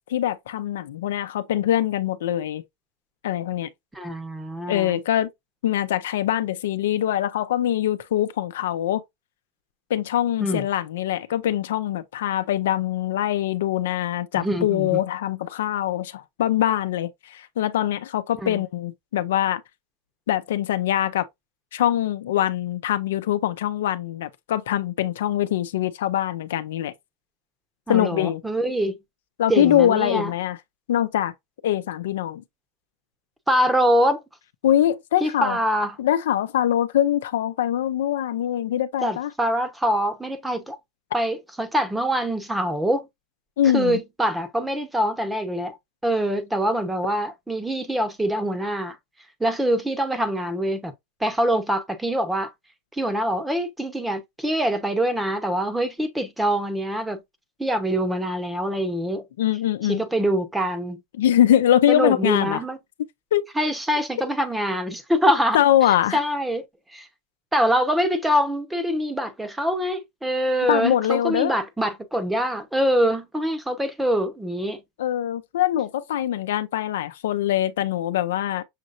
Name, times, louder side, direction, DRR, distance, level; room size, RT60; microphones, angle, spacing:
voice 1, 0.1-2.6 3.2-3.7 4.7-5.3 5.6-9.0 9.9-19.6 20.3-21.2 21.7-26.9 27.9-28.4 29.4-30.6 30.9-31.3 31.6-32.4 34.6-35.6 36.0-39.3 43.6-44.0 59.4-60.0 61.2-62.6 63.0-63.4 65.5-66.2 70.7-71.5 75.0-78.6, left 12 dB, 80° left, 0.6 m, -23 dB
voice 2, 3.9-5.0 10.4-10.6 14.3-15.0 18.4-18.6 27.9-29.0 29.5-30.3 33.5-34.2 35.2-36.0 39.0-40.8 41.1-43.1 43.7-45.8 46.0-49.0 49.4-50.9 51.2-52.5 52.9-57.2 57.6-59.2 59.8-61.0 61.9-62.8 63.6-65.6 65.9-66.6 66.9-67.1 67.5-74.8, equal, 5° right, 0.9 m, -24 dB
6.6 x 3.1 x 2.5 m
supercardioid pair, 135°, 0 cm